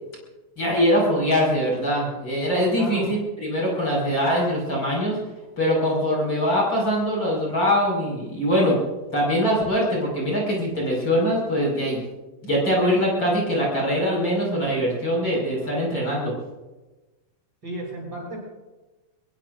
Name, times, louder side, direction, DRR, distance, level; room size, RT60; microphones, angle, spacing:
voice 1, 0.6-5.2 5.6-8.8 9.1-12.1 12.4-16.3, equal, 30° left, -3 dB, 5.9 m, -22 dB
voice 2, 2.5-3.1 17.6-18.4, right 1 dB, 30° right, -3 dB, 7.2 m, -33 dB
23.5 x 22.0 x 2.6 m, 1.1 s
omnidirectional pair, 4.1 m